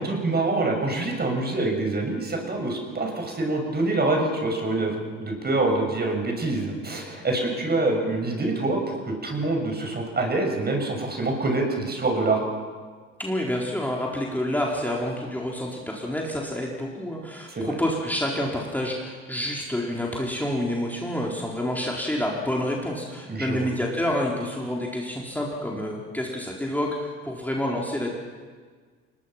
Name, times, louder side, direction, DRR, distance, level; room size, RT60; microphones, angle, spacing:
voice 1, 0.0-12.4 17.5-17.7 23.3-23.7, right 2 dB, 25° right, 3 dB, 6.6 m, -26 dB
voice 2, 13.2-28.1, left 1 dB, 5° left, -2 dB, 4.2 m, -28 dB
29.0 x 21.0 x 5.9 m, 1.6 s
figure-of-eight pair, 60°, 37 cm